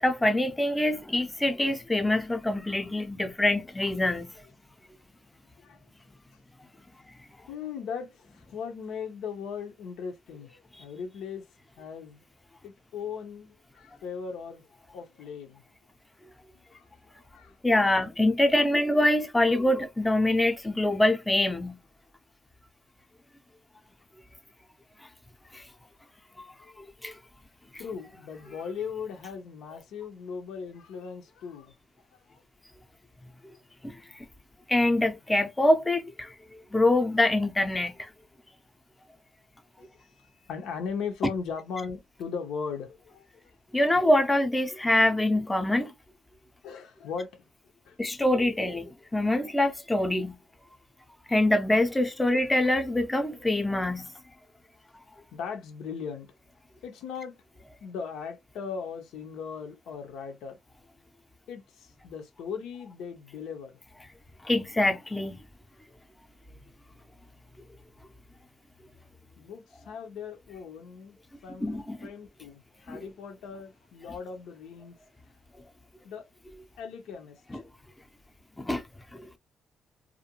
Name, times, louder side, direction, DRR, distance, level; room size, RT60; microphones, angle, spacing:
voice 1, 0.0-4.3 17.6-21.8 25.5-25.6 27.0-27.1 33.8-34.0 34.7-38.1 43.7-45.9 48.0-50.4 51.3-54.1 64.4-65.4 71.6-72.1 72.9-73.0 77.5-77.6 78.6-78.8 79.1-79.3, left 1 dB, 15° left, 0.5 m, -25 dB
voice 2, 7.5-11.4 11.8-12.2 12.6-14.7 14.9-15.6 16.5-17.5 26.6-26.9 27.8-31.7 32.1-32.4 39.8-43.5 46.6-47.4 47.8-48.0 55.3-56.3 56.8-57.3 57.8-60.6 61.5-63.8 69.4-71.2 71.4-75.0 76.0-76.3 76.8-77.6, left 6 dB, 85° left, 0.6 m, -38 dB
2.4 x 2.1 x 2.8 m
cardioid pair, 90°, 0 cm